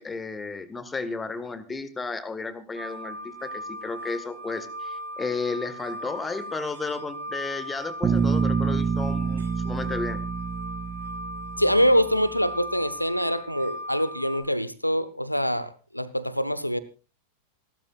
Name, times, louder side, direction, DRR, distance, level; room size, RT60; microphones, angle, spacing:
voice 1, 0.0-10.2, left 4 dB, 15° left, 14 dB, 1.5 m, -33 dB
sound 1, 2.8-14.4, equal, 80° right, 5.6 m, -38 dB
Bass guitar, 8.0-12.1, right 5 dB, 20° right, 2.3 m, -27 dB
voice 2, 11.6-16.8, equal, 90° left, 17 dB, 0.8 m, -24 dB
28.0 x 12.5 x 2.4 m, 0.32 s
figure-of-eight pair, 90°, 0 cm